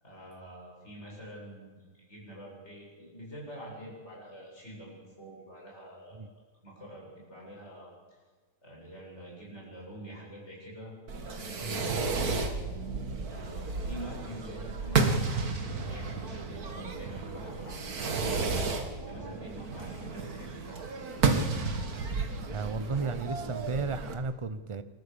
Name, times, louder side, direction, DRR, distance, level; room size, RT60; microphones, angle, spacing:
voice 1, 0.0-1.8 2.1-6.2 6.6-7.9 8.6-10.9 11.2-12.4 13.2-21.0, right 1 dB, 35° left, -4 dB, 8.2 m, -46 dB
Fireworks, 11.1-24.1, right 4 dB, 55° right, 2.1 m, -32 dB
voice 2, 22.5-24.8, right 4 dB, 40° right, 12 dB, 0.4 m, -33 dB
28.5 x 13.0 x 7.0 m, 1.5 s
omnidirectional pair, 1.9 m